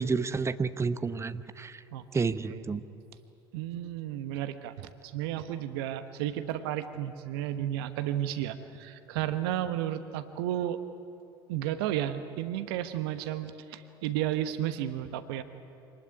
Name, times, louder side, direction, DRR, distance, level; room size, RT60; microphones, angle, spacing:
voice 1, 0.0-1.8 2.1-2.8, right 4 dB, 20° right, 13 dB, 1.0 m, -30 dB
voice 2, 1.9-2.2 2.5-2.6 3.5-10.8 11.5-15.4, right 12 dB, 65° right, 11 dB, 1.2 m, -33 dB
26.5 x 19.5 x 9.8 m, 2.7 s
figure-of-eight pair, 65°, 13 cm